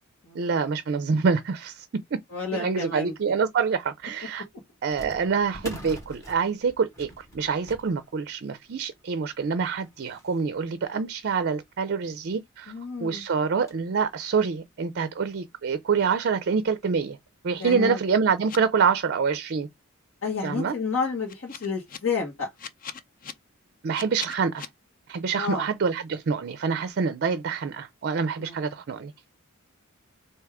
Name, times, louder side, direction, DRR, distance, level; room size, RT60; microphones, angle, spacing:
voice 1, 0.3-1.9 2.1-2.2 2.5-4.5 4.8-12.7 13.0-17.2 17.4-19.7 20.4-20.7 23.8-24.7 25.1-29.1, right 5 dB, 50° right, 0.4 m, -26 dB
voice 2, 2.3-3.1 12.7-13.2 17.6-18.0 20.2-22.5 25.3-25.7 28.4-28.6, left 4 dB, 65° left, 1.4 m, -30 dB
sound 1, 3.5-3.6 4.9-11.8 12.4-12.5 12.7-12.9 13.3-14.0 14.5-14.6 15.4-15.5 15.9-16.0 17.4-17.7 18.1-18.2 18.8-19.0, equal, 15° left, 1.5 m, -46 dB
sound 2, 18.5-18.6 21.3-22.0 22.6-23.3 23.9-24.7, left 7 dB, 40° left, 0.5 m, -39 dB
3.5 x 2.7 x 4.6 m
head